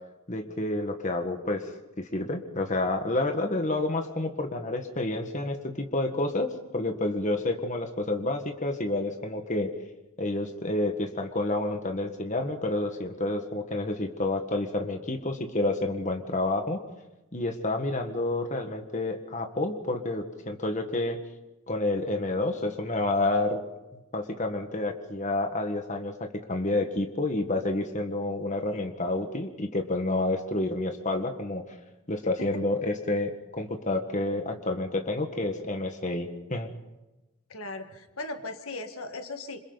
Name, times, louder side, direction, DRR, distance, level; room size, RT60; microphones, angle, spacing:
voice 1, 0.3-1.7 2.0-9.7 10.2-16.8 17.3-21.2 21.7-23.6 24.1-31.8 32.1-36.7, left 2 dB, 35° left, 5 dB, 1.6 m, -29 dB
voice 2, 37.5-39.6, left 2 dB, 70° left, 6 dB, 1.8 m, -38 dB
27.5 x 26.5 x 4.1 m, 1.0 s
head